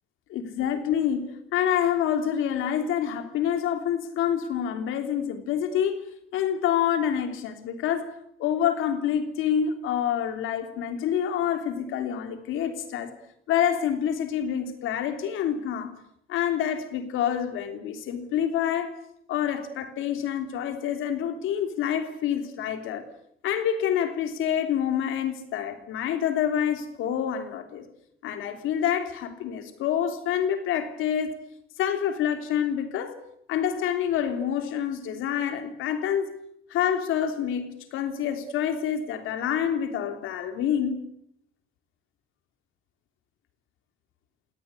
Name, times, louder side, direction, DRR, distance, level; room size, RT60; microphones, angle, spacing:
voice 1, 0.3-6.0 6.3-8.1 8.4-13.1 13.5-15.9 16.3-18.9 19.3-23.0 23.4-27.8 28.2-31.3 31.8-33.2 33.5-36.3 36.7-41.0, left 9 dB, 90° left, 3.4 m, -27 dB
27.0 x 19.0 x 8.5 m
cardioid pair, 90°, 20 cm